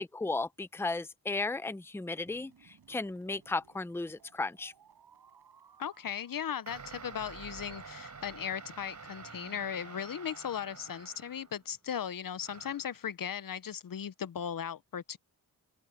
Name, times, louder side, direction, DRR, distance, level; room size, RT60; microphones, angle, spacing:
voice 1, 0.0-4.7, left 3 dB, 5° left, 0.6 m, -35 dB
sound 1, 2.2-8.2, right 7 dB, 90° right, 7.4 m, -63 dB
voice 2, 5.8-15.2, left 8 dB, 60° left, 0.7 m, -37 dB
sound 2, 6.7-11.7 12.4-13.0, right 5 dB, 50° right, 3.8 m, -48 dB
open air
wide cardioid pair, 95°, 37 cm